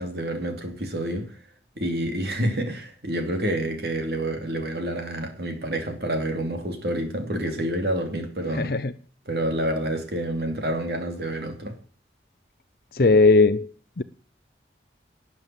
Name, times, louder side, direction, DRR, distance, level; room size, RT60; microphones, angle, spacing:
voice 1, 0.0-1.4 1.8-8.7 9.3-11.7, right 1 dB, 65° right, 2.7 m, -28 dB
voice 2, 8.5-8.9 12.9-13.7 14.0-14.1, left 3 dB, 55° left, 0.6 m, -18 dB
12.5 x 7.4 x 9.1 m
head